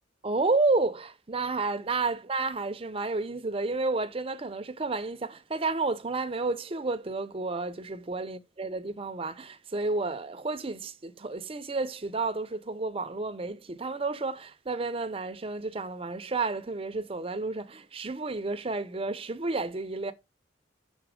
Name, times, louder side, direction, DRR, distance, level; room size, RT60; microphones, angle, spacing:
voice 1, 0.2-20.1, right 3 dB, 30° right, 0.6 m, -31 dB
6.1 x 4.0 x 6.3 m
head